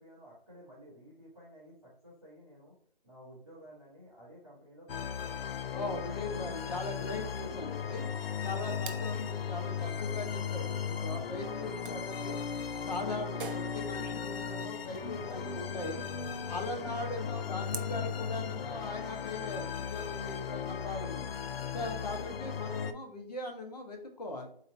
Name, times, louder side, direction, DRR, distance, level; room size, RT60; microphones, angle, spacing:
voice 1, 0.0-2.7 3.0-5.7 20.0-20.2 21.7-22.0, equal, ahead, -22 dB, 0.8 m, -54 dB
sound 1, 4.9-22.9, left 7 dB, 75° left, 0.5 m, -37 dB
voice 2, 5.7-8.0 8.4-12.4 12.8-16.0 16.5-21.3 21.7-24.5, left 2 dB, 45° left, 2 dB, 1.0 m, -39 dB
sound 2, 7.7-18.0, right 5 dB, 65° right, 0.6 m, -50 dB
4.1 x 2.8 x 4.3 m, 0.63 s
hypercardioid pair, 175°, 29 cm